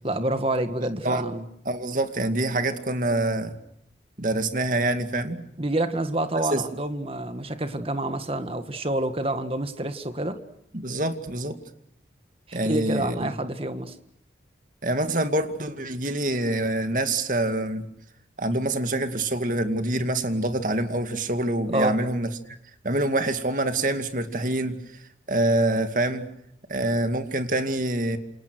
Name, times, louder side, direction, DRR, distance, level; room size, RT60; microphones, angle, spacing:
voice 1, 0.0-1.4 5.6-10.4 12.5-13.9 21.7-21.9, right 1 dB, 35° right, 9 dB, 1.9 m, -28 dB
voice 2, 1.7-3.5 4.2-5.4 6.5-6.6 10.7-11.6 12.5-13.3 14.8-17.9 18.4-22.3 22.8-24.8 25.3-26.3 26.7-28.2, right 1 dB, 50° right, 8 dB, 2.3 m, -25 dB
28.5 x 28.0 x 6.4 m, 0.74 s
head